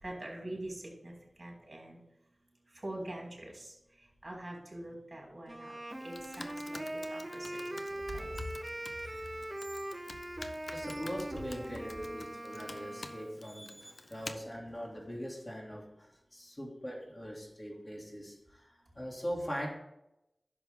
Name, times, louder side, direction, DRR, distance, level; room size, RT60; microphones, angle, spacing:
voice 1, 0.0-1.1 1.4-2.0 2.8-3.7 4.2-5.7 6.0-6.8 7.1-7.6 8.1-8.4, right 1 dB, 40° right, -2 dB, 3.8 m, -43 dB
Wind instrument woodwind instrument, 5.5-13.4, right 1 dB, 25° right, 0.8 m, -41 dB
Computer keyboard, 5.9-14.3, left 3 dB, 75° left, 0.6 m, -50 dB
sound 1, 9.0-10.0 10.6-11.1 12.5-12.7 13.4-14.3 14.7-15.5, equal, 5° right, 1.5 m, -57 dB
voice 2, 10.7-19.7, equal, 35° left, -1 dB, 2.8 m, -41 dB
10.5 x 6.9 x 3.7 m, 0.87 s
wide cardioid pair, 50°, 0 cm